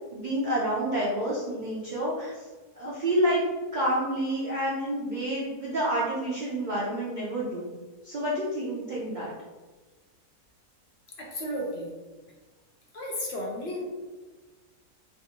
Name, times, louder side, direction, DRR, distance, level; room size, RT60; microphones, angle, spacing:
voice 1, 0.1-2.4 2.8-3.4 3.7-7.8 8.0-9.3, right 1 dB, 85° right, -7 dB, 0.4 m, -29 dB
voice 2, 11.2-11.9 12.9-13.9, equal, 60° left, -2 dB, 0.7 m, -33 dB
3.4 x 2.5 x 2.8 m, 1.3 s
omnidirectional pair, 1.6 m